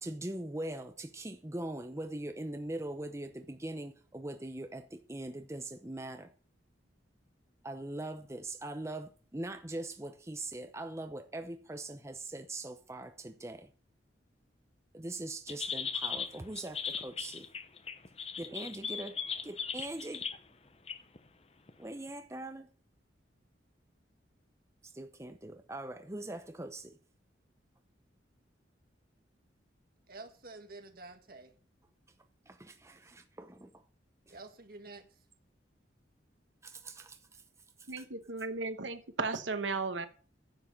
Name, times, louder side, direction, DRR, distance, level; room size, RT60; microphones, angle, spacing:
voice 1, 0.0-6.3 7.6-13.7 14.9-17.5 18.4-20.3 21.8-22.7 24.8-27.0 32.5-33.8 34.3-34.4 36.6-37.4 38.0-38.1, right 1 dB, 15° right, 0.7 m, -42 dB
sound 1, 15.5-20.4 20.9-21.2 21.7-21.8, left 6 dB, 35° left, 0.8 m, -38 dB
voice 2, 30.1-31.5 34.3-35.1, right 3 dB, 50° right, 2.0 m, -49 dB
voice 3, 37.9-40.1, right 3 dB, 90° right, 1.1 m, -35 dB
10.5 x 7.5 x 7.1 m
head